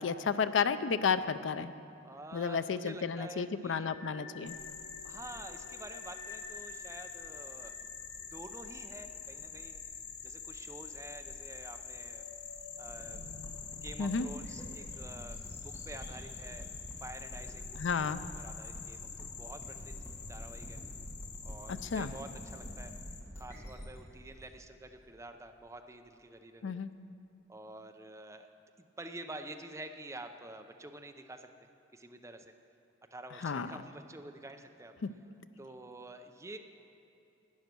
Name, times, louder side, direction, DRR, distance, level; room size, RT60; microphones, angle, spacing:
voice 1, 0.0-1.7 2.3-4.6 14.0-14.3 17.8-18.2 21.9-22.1 26.6-26.9 33.4-33.7, left 5 dB, 80° left, 13 dB, 0.5 m, -32 dB
voice 2, 2.0-3.9 5.0-7.7 8.3-9.8 10.2-12.3 12.8-13.2 13.8-16.7 17.0-19.9 20.3-20.8 21.4-22.9 23.4-26.8 27.5-28.5 28.8-31.5 31.9-32.5 33.1-34.9 35.6-36.6, right 2 dB, 15° right, 6 dB, 0.6 m, -48 dB
sound 1, 3.8-10.7 11.0-11.1 11.6-17.0, left 4 dB, 45° left, 2.4 m, -53 dB
sound 2, 4.5-23.2, left 7 dB, 65° left, 1.0 m, -46 dB
sound 3, 12.9-25.5, equal, 15° left, 1.7 m, -47 dB
12.0 x 9.4 x 6.1 m, 2.8 s
head